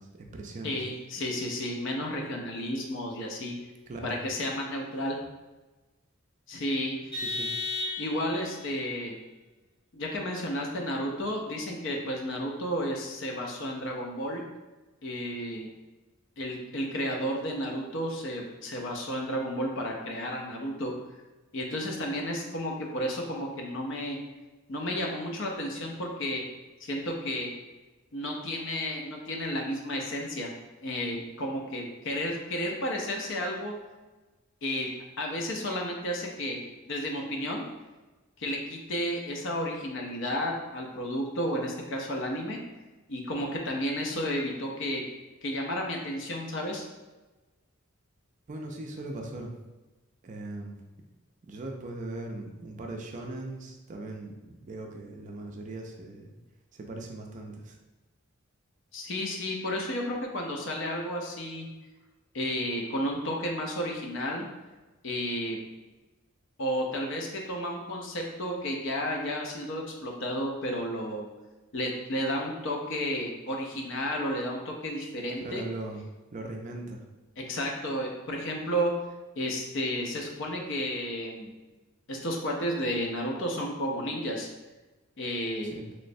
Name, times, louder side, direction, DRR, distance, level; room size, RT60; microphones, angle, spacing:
voice 1, 0.0-0.7 3.9-4.2 7.2-7.5 48.5-49.5 50.2-50.7 51.5-56.3 56.7-57.8 75.4-76.0 76.3-77.0 85.6-85.9, right 2 dB, 35° right, 2 dB, 0.4 m, -39 dB
voice 2, 0.6-3.6 4.0-5.2 6.5-7.0 8.0-9.2 9.9-14.4 15.0-15.7 16.4-20.9 21.5-24.2 24.7-26.4 26.8-27.5 28.1-30.5 30.8-33.7 34.6-34.9 35.2-36.6 36.9-37.6 38.4-42.6 43.1-45.0 45.4-46.8 58.9-61.7 62.3-64.4 65.0-65.6 66.6-71.3 71.7-75.6 77.4-78.9 79.4-81.5 82.1-84.5 85.2-85.7, equal, 60° left, 0 dB, 0.6 m, -32 dB
Vehicle horn car horn honking, 7.1-8.5, left 2 dB, 25° left, 1.4 m, -33 dB
3.1 x 3.0 x 2.6 m, 1.2 s
head